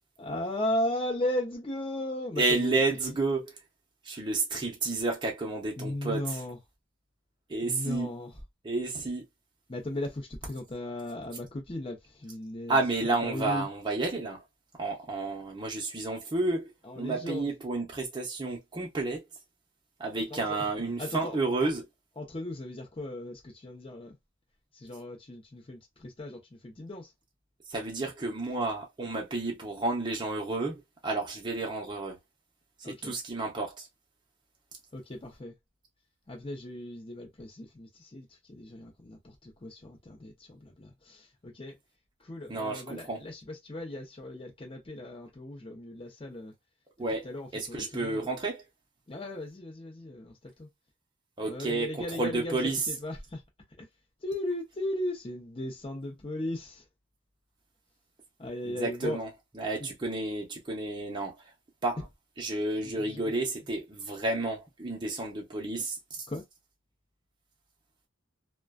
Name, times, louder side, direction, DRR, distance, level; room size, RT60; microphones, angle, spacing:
voice 1, 0.2-2.8 5.8-6.6 7.6-8.3 9.7-12.8 13.0-13.7 16.9-17.5 20.3-20.4 21.0-21.4 22.2-24.1 24.8-27.1 32.8-33.1 34.9-35.5 36.3-41.7 42.2-46.5 47.2-48.3 49.1-50.7 51.4-52.6 52.9-53.4 53.8-53.9 54.2-56.8 58.4-59.2 59.8-59.9 62.8-63.3 66.3-66.4, left 1 dB, 30° left, 0.7 m, -36 dB
voice 2, 2.4-3.6 4.0-6.4 7.5-8.1 8.6-9.2 12.7-14.4 14.8-19.2 20.0-21.9 27.7-32.2 32.8-33.9 42.5-43.2 47.0-48.6 51.4-52.9 58.7-61.5 61.8-62.0 62.4-66.3, right 2 dB, 25° right, 0.6 m, -31 dB
2.4 x 2.2 x 2.3 m
head